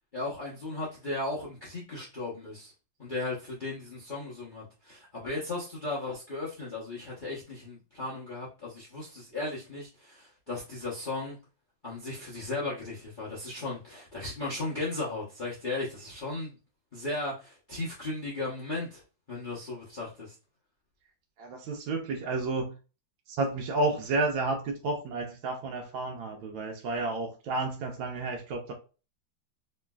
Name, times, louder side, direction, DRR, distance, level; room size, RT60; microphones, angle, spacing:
voice 1, 0.1-2.7 3.0-11.4 11.8-16.5 16.9-19.0 19.3-20.3, left 2 dB, 65° left, 0.5 m, -36 dB
voice 2, 21.4-22.8 23.3-28.7, right 2 dB, 75° right, 1.3 m, -31 dB
3.1 x 3.0 x 2.2 m
omnidirectional pair, 2.2 m